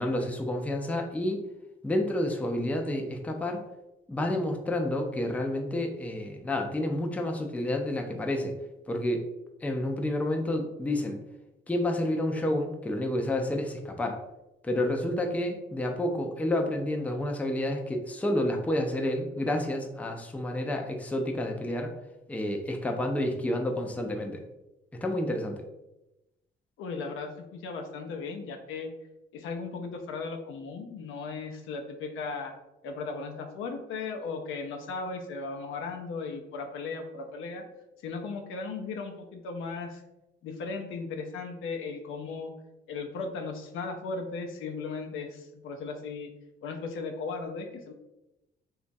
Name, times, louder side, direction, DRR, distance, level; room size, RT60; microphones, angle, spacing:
voice 1, 0.0-1.4 1.8-3.6 4.1-8.5 8.9-9.3 9.6-11.2 11.7-14.2 14.6-21.9 22.3-24.4 25.0-25.6, left 1 dB, 5° left, 2 dB, 0.4 m, -29 dB
voice 2, 26.8-28.9 29.3-32.5 32.8-37.6 38.0-40.0 40.4-42.5 42.9-46.3 46.6-47.9, left 4 dB, 80° left, 4 dB, 0.5 m, -36 dB
2.9 x 2.3 x 2.6 m, 0.94 s
cardioid pair, 90°, 20 cm